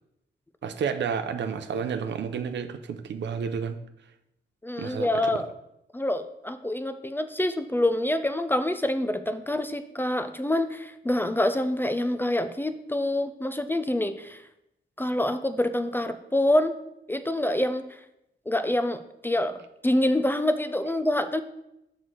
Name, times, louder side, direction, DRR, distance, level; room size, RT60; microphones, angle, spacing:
voice 1, 0.6-3.8 4.8-5.4, right 6 dB, 80° right, 9 dB, 0.6 m, -31 dB
voice 2, 4.6-5.5 5.9-14.4 15.0-16.8 17.1-17.8 18.5-19.6 19.8-21.4, left 1 dB, 10° left, 10 dB, 0.4 m, -26 dB
6.3 x 6.1 x 3.8 m, 0.85 s
wide cardioid pair, 110°, 18 cm